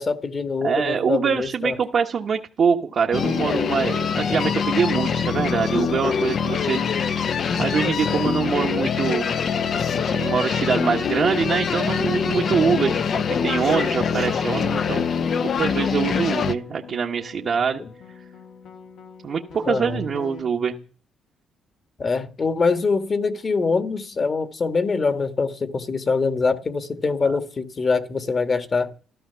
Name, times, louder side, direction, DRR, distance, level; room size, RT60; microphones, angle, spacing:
voice 1, 0.0-1.7 17.8-17.9 19.7-20.0 22.0-28.9, left 4 dB, 40° left, 1.6 m, -24 dB
voice 2, 0.6-9.3 10.0-13.0 13.4-15.1 15.6-17.8 19.2-20.8, right 6 dB, 55° right, 1.2 m, -24 dB
sound 1, 3.1-16.5, left 6 dB, 55° left, 0.9 m, -24 dB
sound 2, 8.4-20.4, left 5 dB, 80° left, 3.0 m, -44 dB
14.5 x 12.5 x 6.9 m
cardioid pair, 90°, 0 cm